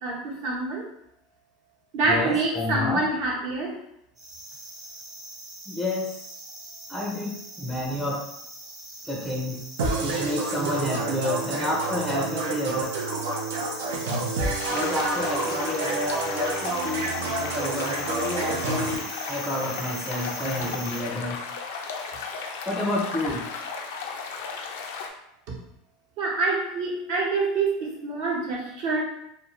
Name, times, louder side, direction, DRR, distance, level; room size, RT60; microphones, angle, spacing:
voice 1, 0.0-0.8 1.9-3.8 26.2-29.0, right 3 dB, 65° right, -3 dB, 1.0 m, -26 dB
voice 2, 2.1-3.1 5.7-6.1 6.9-8.2 9.0-9.6 10.0-12.8 14.7-21.4 22.7-23.4, left 1 dB, ahead, -3 dB, 0.5 m, -30 dB
sound 1, 4.2-21.0, right 2 dB, 35° right, 1.1 m, -42 dB
sound 2, 9.8-18.9, right 3 dB, 90° right, 0.5 m, -29 dB
sound 3, 14.6-25.1, left 5 dB, 80° left, 0.4 m, -35 dB
2.5 x 2.5 x 3.0 m, 0.76 s
supercardioid pair, 120°, 0 cm